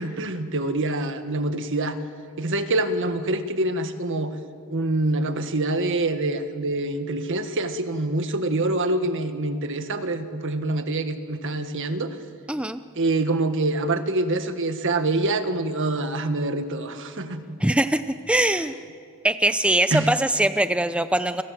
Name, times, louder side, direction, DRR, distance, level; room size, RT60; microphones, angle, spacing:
voice 1, 0.0-2.0 2.4-4.3 4.7-12.2 12.9-17.6 19.9-20.1, right 2 dB, 60° right, 8 dB, 1.7 m, -25 dB
voice 2, 12.5-12.8 17.6-18.7 19.2-21.4, right 1 dB, 5° right, 10 dB, 0.6 m, -22 dB
29.0 x 26.0 x 7.7 m, 2.3 s
head